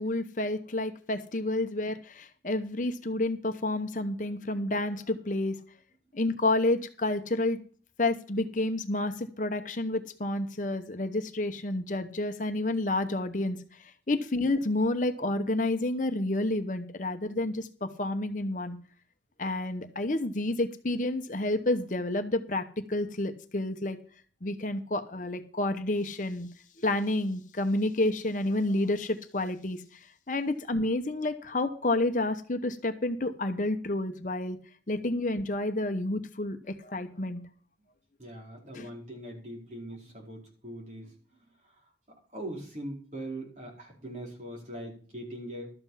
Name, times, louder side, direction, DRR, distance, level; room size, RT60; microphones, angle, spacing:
voice 1, 0.0-5.6 6.1-7.6 8.0-13.6 14.1-18.8 19.4-24.0 24.4-26.5 26.8-29.8 30.3-34.6 34.9-37.4 38.7-38.9, left 2 dB, 45° left, 8 dB, 0.9 m, -29 dB
voice 2, 38.2-41.1 41.4-41.5 42.3-45.7, right 1 dB, 40° right, -1 dB, 4.7 m, -41 dB
12.5 x 7.8 x 5.7 m, 0.43 s
head